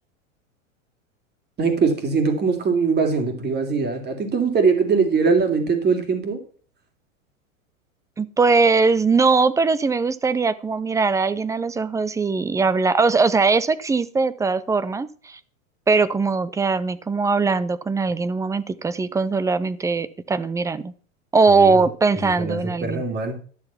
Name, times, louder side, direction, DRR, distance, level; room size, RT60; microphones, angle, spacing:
voice 1, 1.6-6.4 21.5-21.7 22.2-23.4, right 5 dB, 25° right, 6 dB, 3.2 m, -21 dB
voice 2, 8.2-15.4 15.9-20.9 21.3-23.0, right 4 dB, 10° right, 17 dB, 0.5 m, -20 dB
12.5 x 6.5 x 5.8 m, 0.42 s
hypercardioid pair, 115°, 40 cm